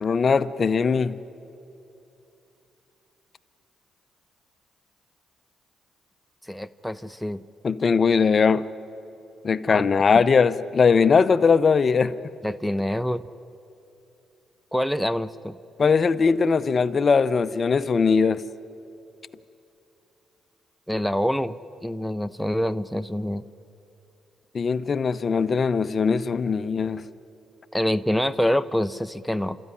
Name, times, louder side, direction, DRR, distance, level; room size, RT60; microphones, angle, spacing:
voice 1, 0.0-1.2 7.6-8.7 9.4-12.1 15.8-18.4 24.5-27.0, left 5 dB, 40° left, 14 dB, 0.7 m, -20 dB
voice 2, 6.5-7.4 9.7-9.8 12.4-13.2 14.7-15.6 20.9-23.4 27.7-29.6, equal, ahead, 12 dB, 0.6 m, -26 dB
30.0 x 14.0 x 9.8 m, 2.8 s
cardioid pair, 90°, 0 cm